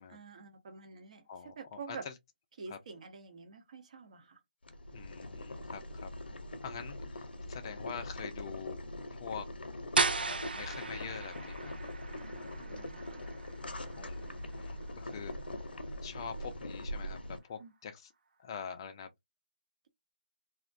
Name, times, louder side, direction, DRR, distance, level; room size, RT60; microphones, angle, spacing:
voice 1, 0.1-1.3 1.6-2.0 2.6-4.4 6.3-6.4 12.6-13.3 17.6-17.7, right 5 dB, 45° right, 0.8 m, -48 dB
voice 2, 1.3-2.1 2.7-2.8 4.9-6.1 6.6-8.9 9.1-9.5 10.2-11.8 14.0-15.3 16.0-18.1 18.4-19.1, left 7 dB, 25° left, 0.4 m, -45 dB
Boiling, 4.6-17.4, left 1 dB, 80° left, 0.6 m, -42 dB
sound 1, 9.9-15.6, right 4 dB, 75° right, 0.5 m, -36 dB
2.4 x 2.1 x 2.5 m
figure-of-eight pair, 160°, 5 cm